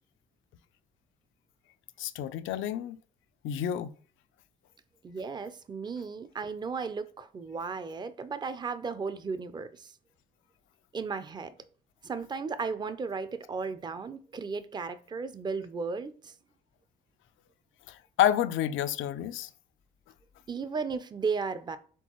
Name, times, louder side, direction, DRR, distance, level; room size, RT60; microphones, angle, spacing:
voice 1, 2.0-3.0 3.4-3.9 17.9-19.5, left 11 dB, 80° left, 0.4 m, -29 dB
voice 2, 5.0-9.9 10.9-11.5 12.0-16.3 20.5-21.8, right 5 dB, 20° right, 0.4 m, -35 dB
4.4 x 3.7 x 3.0 m
cardioid pair, 90°, 20 cm